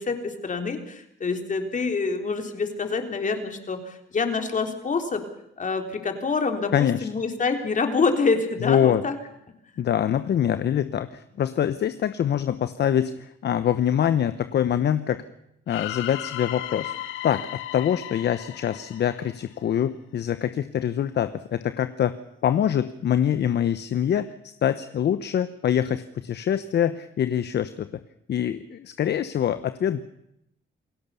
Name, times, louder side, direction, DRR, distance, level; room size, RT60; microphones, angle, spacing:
voice 1, 0.0-5.2 5.6-9.2, left 4 dB, 40° left, 6 dB, 3.6 m, -26 dB
voice 2, 6.7-7.1 8.6-9.0 9.8-15.2 15.7-16.9 17.2-22.1 22.4-27.9 28.3-30.0, left 9 dB, 60° left, 12 dB, 1.0 m, -24 dB
sound 1, 15.7-19.7, left 13 dB, 85° left, 1.3 m, -35 dB
28.0 x 16.5 x 7.0 m, 0.79 s
cardioid pair, 90°, 20 cm